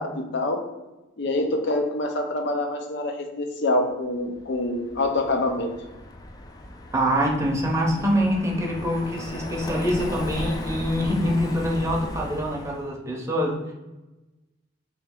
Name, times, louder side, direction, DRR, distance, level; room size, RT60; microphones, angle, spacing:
voice 1, 1.2-5.7, left 2 dB, 60° left, 3 dB, 0.6 m, -25 dB
Car passing by, 4.4-12.9, left 1 dB, 20° left, 0.3 m, -36 dB
voice 2, 6.9-13.7, equal, 15° right, -1 dB, 0.7 m, -25 dB
3.3 x 3.1 x 3.6 m, 1.1 s
head